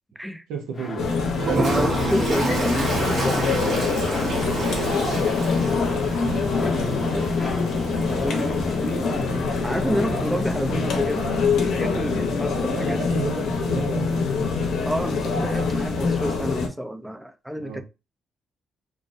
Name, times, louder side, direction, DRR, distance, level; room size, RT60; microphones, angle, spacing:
voice 1, 0.5-1.7 4.4-7.4 10.5-10.6 12.6-14.5 17.6-17.8, right 5 dB, 90° right, 0.7 m, -34 dB
sound 1, 0.7-10.7, left 3 dB, 35° left, 0.8 m, -35 dB
sound 2, 1.0-16.7, left 4 dB, 70° left, 0.7 m, -24 dB
Toilet flush, 1.3-8.9, right 3 dB, 50° right, 0.9 m, -29 dB
voice 2, 1.5-3.9 8.1-9.1 9.6-11.3 11.6-13.0 14.8-17.8, equal, 5° right, 0.3 m, -29 dB
2.4 x 2.0 x 2.5 m
cardioid pair, 90°, 0 cm